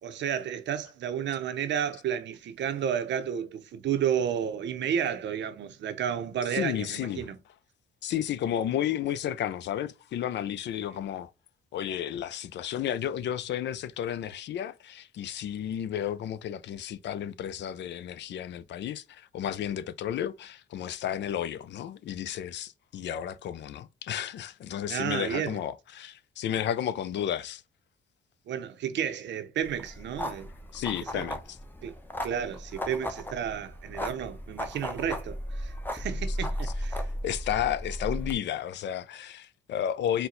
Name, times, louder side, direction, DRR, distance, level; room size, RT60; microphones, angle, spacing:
voice 1, 0.0-7.4 24.9-25.6 28.5-30.5 31.0-31.3 31.8-32.0 32.2-37.0, right 8 dB, 65° right, 0.7 m, -32 dB
voice 2, 6.5-7.3 8.0-11.3 11.7-27.6 30.7-31.6 36.6-36.7 37.2-40.3, left 10 dB, 65° left, 0.5 m, -32 dB
sound 1, 29.6-38.3, equal, 10° left, 0.7 m, -35 dB
4.4 x 2.2 x 3.8 m
cardioid pair, 90°, 20 cm